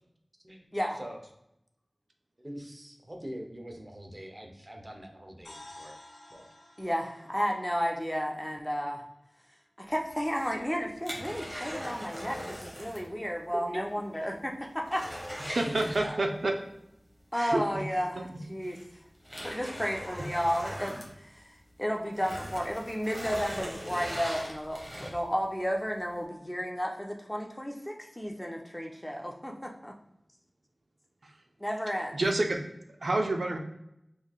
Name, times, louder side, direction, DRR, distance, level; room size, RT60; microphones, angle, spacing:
voice 1, 2.4-6.0 6.3-6.4 15.6-16.3, equal, 35° right, 2 dB, 0.6 m, -44 dB
sound 1, 5.4-9.4, left 1 dB, 65° left, 1.4 m, -53 dB
voice 2, 6.8-9.1 9.8-15.1 17.3-18.2 18.5-18.8 19.4-21.5 21.8-29.5 31.6-32.2, equal, 10° left, 1 dB, 0.5 m, -32 dB
sound 2, 10.1-13.1 13.4-13.5 14.0-14.1 14.4-16.5 17.9-18.0 18.6-21.7 22.1-25.4 25.9-26.0, equal, 5° right, 1.0 m, -40 dB
voice 3, 15.5-16.5 17.3-17.8 18.1-18.3 31.2-31.3 32.1-32.6 33.0-33.6, right 2 dB, 90° right, 3 dB, 0.4 m, -28 dB
3.8 x 3.2 x 2.3 m, 0.82 s
wide cardioid pair, 60°, 0 cm